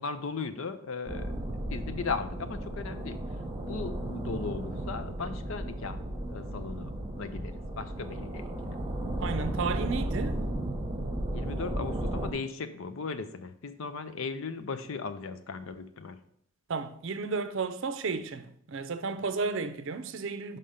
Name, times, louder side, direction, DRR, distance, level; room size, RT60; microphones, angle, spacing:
voice 1, 0.0-1.3 1.7-3.2 3.7-6.0 6.3-6.9 7.2-8.8 11.3-16.2, left 4 dB, 65° left, 0.5 m, -37 dB
sound 1, 1.1-12.3, right 1 dB, 20° right, 0.9 m, -34 dB
voice 2, 9.2-10.4 16.7-20.6, right 4 dB, 60° right, 0.5 m, -33 dB
5.5 x 5.0 x 5.5 m
head